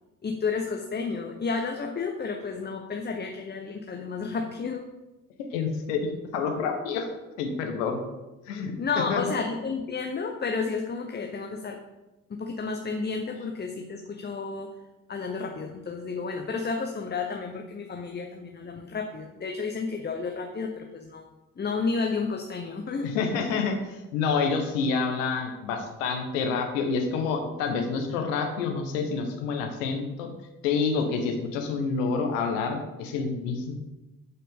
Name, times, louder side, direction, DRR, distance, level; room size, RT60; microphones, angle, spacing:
voice 1, 0.2-4.9 8.8-11.8 12.3-14.7 15.1-21.3 21.6-23.1, left 4 dB, 25° left, 3 dB, 1.0 m, -31 dB
voice 2, 5.5-6.1 6.3-7.1 7.4-8.0 8.5-8.7 9.1-9.2 23.0-30.3 30.6-33.7, left 5 dB, 75° left, 4 dB, 1.3 m, -28 dB
11.0 x 5.6 x 3.8 m, 1.0 s
figure-of-eight pair, 50°, 39 cm